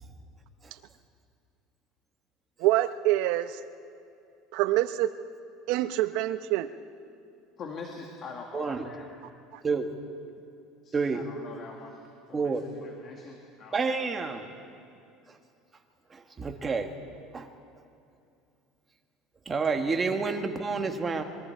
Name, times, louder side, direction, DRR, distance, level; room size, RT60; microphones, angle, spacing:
voice 1, 2.6-3.6 4.5-5.1 5.7-6.7, right 15 dB, 70° right, 12 dB, 0.8 m, -25 dB
voice 2, 7.6-9.1 10.8-12.0 12.3-13.8 14.2-14.4, left 4 dB, 35° left, 1 dB, 1.9 m, -43 dB
voice 3, 8.5-8.9 9.6-9.9 10.9-11.3 12.3-12.7 13.7-14.4 16.4-16.9 17.3-17.5 19.5-21.2, right 4 dB, 20° right, 4 dB, 1.6 m, -28 dB
26.5 x 21.5 x 4.6 m, 2.6 s
cardioid pair, 145°, 0 cm